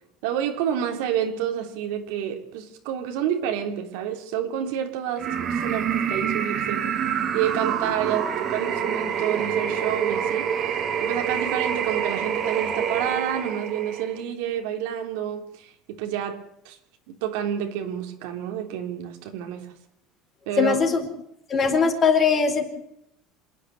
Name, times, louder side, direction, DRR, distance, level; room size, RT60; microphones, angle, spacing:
voice 1, 0.2-6.9 7.3-10.7 11.0-16.4 16.6-16.8 17.1-19.6 20.5-20.8, right 10 dB, 85° right, 3.4 m, -29 dB
sound 1, 5.2-14.2, right 8 dB, 40° right, 2.5 m, -27 dB
voice 2, 20.6-21.1 21.5-22.6, left 5 dB, 30° left, 4.2 m, -20 dB
27.0 x 10.0 x 9.3 m
cardioid pair, 140°, 0 cm